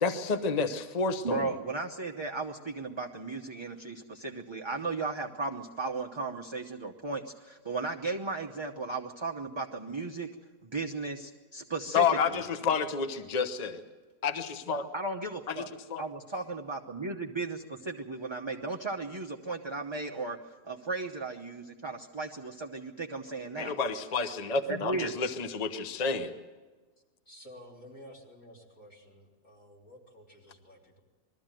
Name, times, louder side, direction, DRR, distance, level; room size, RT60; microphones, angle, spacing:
voice 1, 0.0-1.5 11.9-13.8 14.2-14.9 15.5-15.6 15.9-16.0 23.6-26.3, left 5 dB, 30° left, 8 dB, 0.9 m, -29 dB
voice 2, 1.2-10.3 10.6-12.4 14.9-15.7 16.0-23.8 24.7-25.1, right 3 dB, 25° right, 0 dB, 0.7 m, -35 dB
voice 3, 27.3-31.0, equal, 50° left, -3 dB, 4.2 m, -52 dB
21.5 x 14.0 x 9.1 m, 1.3 s
omnidirectional pair, 1.8 m